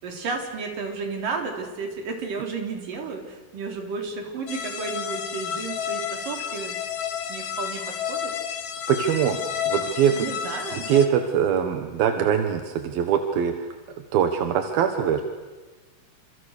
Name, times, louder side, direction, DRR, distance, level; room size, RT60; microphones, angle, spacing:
voice 1, 0.0-6.8 7.3-8.6 10.1-10.9, right 4 dB, 65° right, 2 dB, 5.5 m, -33 dB
sound 1, 4.5-11.1, left 8 dB, 55° left, 2.9 m, -31 dB
voice 2, 8.9-9.4 9.7-10.1 10.8-13.7 14.1-15.2, right 8 dB, 85° right, 6 dB, 3.3 m, -22 dB
29.5 x 27.5 x 6.6 m, 1.2 s
omnidirectional pair, 4.1 m